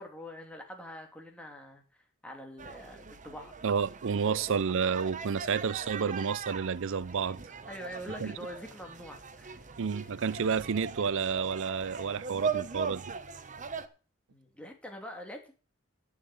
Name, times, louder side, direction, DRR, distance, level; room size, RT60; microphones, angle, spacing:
voice 1, 0.0-3.5 4.2-4.6 7.7-9.7 14.3-15.5, equal, 5° left, 2.8 m, -45 dB
sound 1, 2.6-13.9, right 5 dB, 35° right, 1.0 m, -40 dB
voice 2, 3.6-7.4 8.2-8.3 9.8-13.1, right 6 dB, 65° right, 0.5 m, -30 dB
10.5 x 6.8 x 7.9 m
head